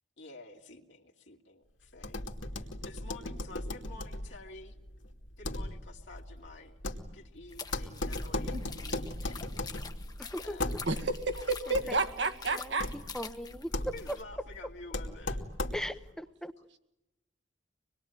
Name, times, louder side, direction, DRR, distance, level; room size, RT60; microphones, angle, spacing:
voice 1, 0.2-2.2 2.6-4.8 5.4-6.8 7.1-8.6 8.8-9.6 10.4-10.7 11.8-11.9 13.8-15.5 15.9-16.0, left 3 dB, 70° left, 2.6 m, -50 dB
sound 1, 2.0-16.1, left 1 dB, 85° left, 2.6 m, -38 dB
sound 2, 7.5-14.2, left 5 dB, 20° left, 1.3 m, -46 dB
voice 2, 10.2-10.6 11.7-12.0 12.5-13.7 14.1-14.2 15.7-16.5, equal, 5° left, 0.9 m, -39 dB
voice 3, 10.9-12.9, right 3 dB, 65° right, 2.0 m, -31 dB
26.0 x 21.0 x 9.2 m
head